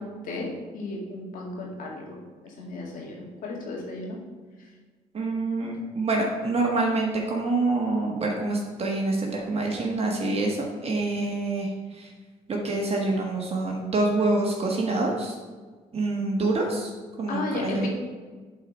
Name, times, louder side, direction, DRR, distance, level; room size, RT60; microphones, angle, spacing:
voice 1, 0.0-2.2 2.4-4.2 17.3-17.9, left 2 dB, 65° left, -2 dB, 2.3 m, -34 dB
voice 2, 5.1-11.7 12.0-12.1 12.5-15.3 15.9-16.9 17.2-17.9, right 2 dB, 40° right, -1 dB, 1.4 m, -26 dB
8.0 x 4.2 x 5.5 m, 1.4 s
supercardioid pair, 70°, 15 cm